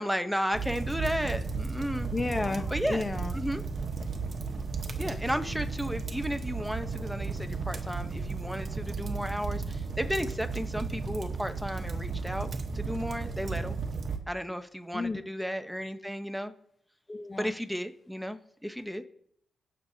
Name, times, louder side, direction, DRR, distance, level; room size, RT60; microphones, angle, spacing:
voice 1, 0.0-2.1 2.7-3.1 3.3-3.6 5.0-9.6 10.0-12.5 12.7-13.8 14.3-16.5 17.4-18.4 18.6-19.0, equal, ahead, 8 dB, 0.9 m, -33 dB
sound 1, 0.5-14.2, right 4 dB, 50° right, 1.1 m, -34 dB
voice 2, 2.1-3.3 14.9-15.2 17.1-17.5, left 3 dB, 25° left, 9 dB, 1.0 m, -32 dB
18.0 x 6.5 x 2.8 m, 0.67 s
cardioid pair, 75°, 0 cm